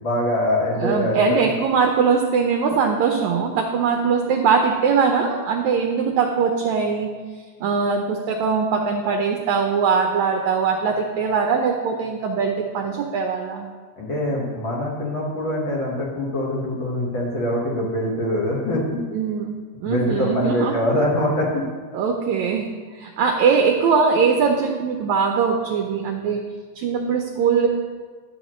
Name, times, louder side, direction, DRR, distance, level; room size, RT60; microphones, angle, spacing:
voice 1, 0.0-1.4 14.0-19.0 19.8-21.6, left 1 dB, 50° left, -4 dB, 1.6 m, -23 dB
voice 2, 0.7-7.1 7.6-13.7 19.1-20.8 21.9-22.7 23.0-26.4 26.8-27.7, right 5 dB, 75° right, 3 dB, 1.8 m, -21 dB
12.5 x 7.1 x 3.1 m, 1.5 s
omnidirectional pair, 3.8 m